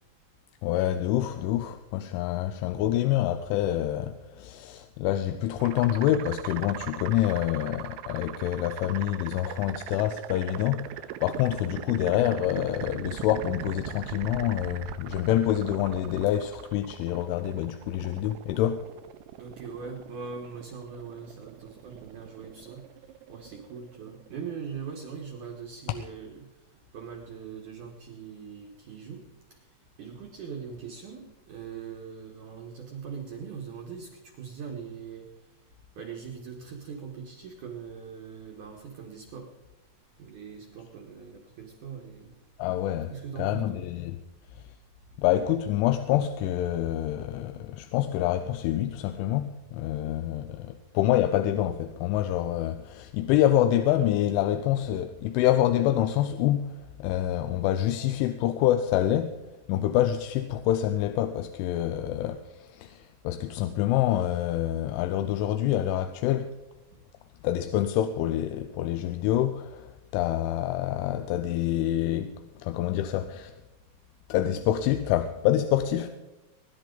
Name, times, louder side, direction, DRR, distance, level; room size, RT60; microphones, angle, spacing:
voice 1, 0.6-18.9 42.6-43.1 43.4-44.2 45.2-59.4 59.7-66.5 67.4-73.5 74.3-76.1, left 12 dB, 85° left, 3.1 m, -27 dB
sound 1, 5.6-24.3, right 13 dB, 80° right, 2.7 m, -41 dB
voice 2, 19.4-22.8 23.3-26.4 26.9-29.2 29.5-29.6 30.0-35.3 36.0-39.5 40.2-42.3 43.1-43.8 66.9-67.0, right 6 dB, 65° right, 2.0 m, -41 dB
23.0 x 10.5 x 3.9 m
omnidirectional pair, 5.5 m